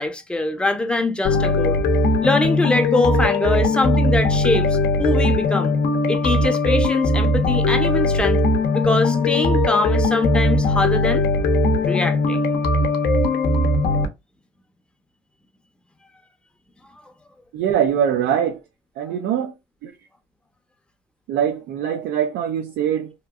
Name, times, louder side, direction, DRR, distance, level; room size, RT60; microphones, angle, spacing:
voice 1, 0.0-1.8 2.2-5.7 6.1-8.4 8.7-11.2 11.8-12.4, left 2 dB, 5° left, 0.5 m, -23 dB
sound 1, 1.2-14.1, left 2 dB, 70° left, 0.6 m, -19 dB
voice 2, 17.5-18.6 19.0-19.5 19.8-19.9 21.3-23.1, right 9 dB, 80° right, 0.4 m, -22 dB
2.9 x 2.4 x 2.3 m
cardioid pair, 110°, 17 cm